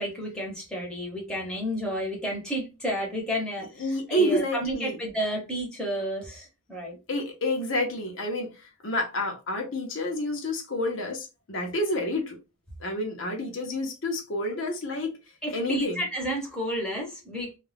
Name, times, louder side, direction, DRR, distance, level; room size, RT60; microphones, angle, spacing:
voice 1, 0.0-3.8 4.1-7.0 15.4-17.5, equal, 5° left, 0.9 m, -31 dB
voice 2, 3.6-5.0 7.1-12.4 12.8-15.2 15.5-16.1, left 1 dB, 65° left, 0.7 m, -29 dB
2.4 x 2.2 x 3.2 m
head